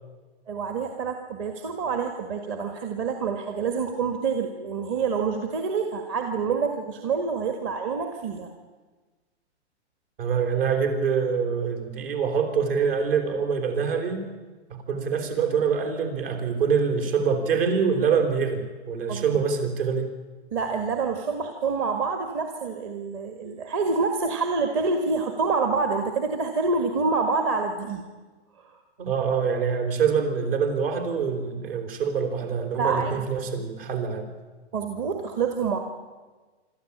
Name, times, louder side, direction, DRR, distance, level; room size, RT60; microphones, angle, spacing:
voice 1, 0.5-8.5 19.1-19.2 20.5-28.0 28.6-28.8 32.8-33.3 34.7-35.8, right 4 dB, 30° right, 5 dB, 1.6 m, -27 dB
voice 2, 10.2-14.3 14.7-20.1 29.0-34.3, right 6 dB, 55° right, 6 dB, 4.3 m, -25 dB
26.0 x 13.0 x 8.7 m, 1.3 s
hypercardioid pair, 155°, 35 cm